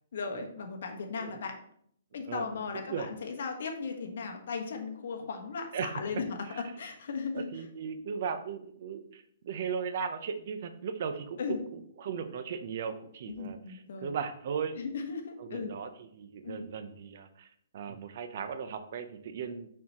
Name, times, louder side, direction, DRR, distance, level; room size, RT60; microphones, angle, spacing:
voice 1, 0.1-1.6 2.1-7.5 11.4-11.6 13.3-14.1 14.7-15.7 16.4-16.7, left 5 dB, 65° left, 4 dB, 1.3 m, -37 dB
voice 2, 2.7-3.1 5.7-6.0 6.5-6.6 7.3-11.4 11.7-14.8 15.4-17.5 17.7-19.7, right 6 dB, 50° right, 9 dB, 0.7 m, -37 dB
6.5 x 5.6 x 3.0 m, 0.66 s
hypercardioid pair, 155°, 0 cm